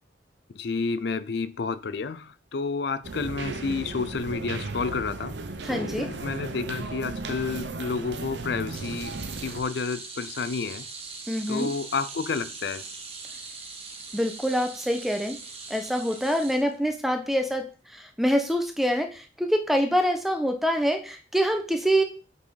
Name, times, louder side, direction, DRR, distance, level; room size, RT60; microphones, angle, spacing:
voice 1, 0.5-5.4 5.7-9.1 9.4-10.9 11.5-12.9, left 4 dB, 60° left, 14 dB, 0.5 m, -30 dB
sound 1, 3.0-9.6, right 3 dB, 70° right, 0.9 m, -35 dB
voice 2, 5.6-6.1 11.3-11.7 14.1-15.4 15.7-22.0, equal, ahead, 5 dB, 1.0 m, -25 dB
sound 2, 8.7-17.2 17.5-17.7 18.9-19.0, right 4 dB, 30° right, 1.5 m, -41 dB
8.1 x 5.6 x 4.0 m, 0.35 s
head